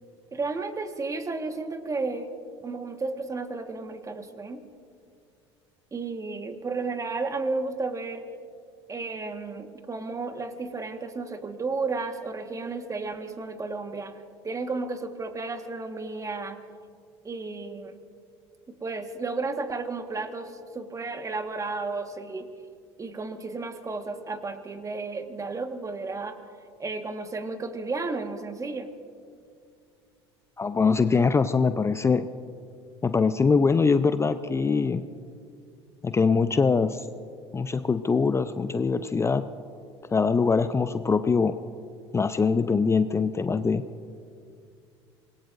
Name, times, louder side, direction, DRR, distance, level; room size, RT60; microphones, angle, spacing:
voice 1, 0.3-2.3 2.6-4.6 5.9-8.3 8.9-14.2 14.4-16.6 17.2-17.9 18.7-22.5 23.0-26.4 26.8-28.9, right 3 dB, 20° right, 7 dB, 1.5 m, -33 dB
voice 2, 30.6-32.3 33.0-35.0 36.0-37.1 37.5-39.4 40.1-41.5 42.1-43.8, left 5 dB, 20° left, 12 dB, 0.5 m, -23 dB
26.5 x 20.0 x 2.6 m, 2.3 s
hypercardioid pair, 70°, 14 cm